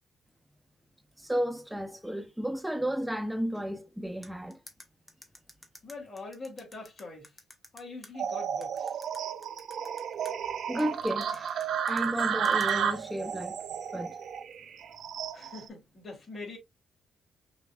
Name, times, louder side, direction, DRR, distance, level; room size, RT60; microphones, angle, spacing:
voice 1, 1.2-4.6 10.7-13.6 13.9-14.2, equal, 5° right, 0.8 m, -33 dB
sound 1, 4.2-8.1 8.6-10.3 10.8-12.7, left 1 dB, 15° left, 1.3 m, -50 dB
voice 2, 5.8-7.3 7.7-9.0 15.3-16.6, left 3 dB, 45° left, 2.9 m, -43 dB
sound 2, 8.2-15.7, right 8 dB, 65° right, 0.7 m, -32 dB
5.9 x 3.1 x 2.4 m
cardioid pair, 90°, 0 cm